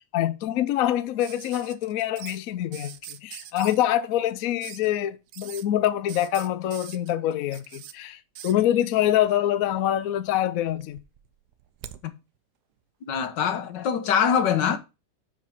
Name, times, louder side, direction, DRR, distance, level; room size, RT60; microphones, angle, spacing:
voice 1, 0.1-3.0 3.2-11.0, left 12 dB, 65° left, 0.9 m, -25 dB
sound 1, 1.2-2.4 2.7-3.8 4.6-4.9 5.3-5.6 6.1-7.9 8.4-8.6 9.7-10.3 10.6-12.0 13.4-13.5, right 11 dB, 70° right, 1.2 m, -43 dB
voice 2, 13.0-14.8, left 7 dB, 85° left, 1.6 m, -23 dB
6.5 x 5.1 x 5.8 m
omnidirectional pair, 1.9 m